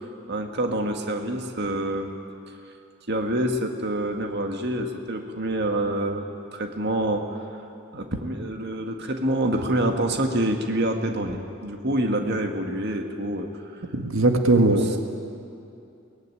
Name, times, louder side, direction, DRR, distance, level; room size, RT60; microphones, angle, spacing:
voice 1, 0.3-2.1 3.1-6.3 6.5-7.4 7.9-13.8 14.7-15.0, right 1 dB, 50° right, 4 dB, 1.8 m, -27 dB
voice 2, 13.9-14.9, right 2 dB, 75° right, 5 dB, 1.7 m, -19 dB
23.0 x 19.0 x 9.9 m, 2.6 s
head